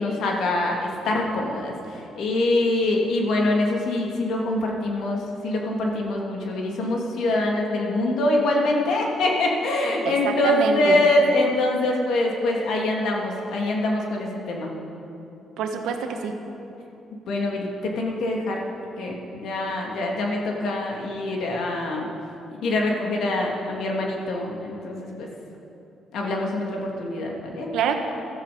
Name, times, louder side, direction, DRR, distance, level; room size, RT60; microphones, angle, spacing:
voice 1, 0.0-14.7 17.3-18.6 19.0-22.1 22.6-25.3 26.1-27.7, left 2 dB, 75° left, -1 dB, 2.5 m, -24 dB
voice 2, 10.0-11.0 15.6-16.4 27.7-28.0, right 7 dB, 85° right, 5 dB, 1.4 m, -26 dB
16.5 x 13.0 x 5.1 m, 2.9 s
cardioid pair, 90°, 0 cm